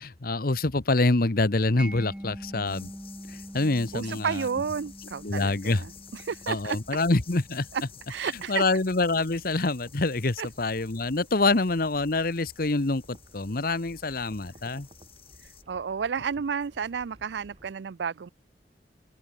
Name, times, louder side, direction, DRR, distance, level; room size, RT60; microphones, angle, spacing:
voice 1, 0.0-2.9 3.3-4.4 5.2-5.8 6.5-7.7 8.5-14.9, left 2 dB, 55° left, 1.2 m, -26 dB
sound 1, 1.6-17.7, right 1 dB, 35° right, 2.4 m, -56 dB
Mallet percussion, 1.8-8.6, equal, 5° right, 1.4 m, -44 dB
sound 2, 2.6-15.6, left 9 dB, 35° left, 4.6 m, -52 dB
voice 2, 3.9-6.8 7.7-7.8 8.1-8.6 10.4-10.5 15.4-18.3, right 6 dB, 75° right, 0.4 m, -31 dB
open air
head